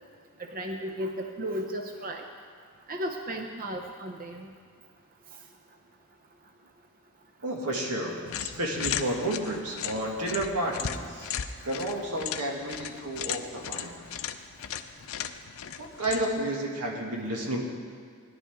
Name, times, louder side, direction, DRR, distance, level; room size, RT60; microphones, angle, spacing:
voice 1, 0.5-2.2 2.9-4.5, equal, 40° right, 4 dB, 0.7 m, -34 dB
voice 2, 7.4-11.3 11.6-13.9 15.8-17.6, right 1 dB, 90° right, 0 dB, 2.0 m, -31 dB
sound 1, 8.3-16.5, left 9 dB, 65° left, 0.5 m, -37 dB
17.5 x 11.0 x 3.6 m, 2.1 s
head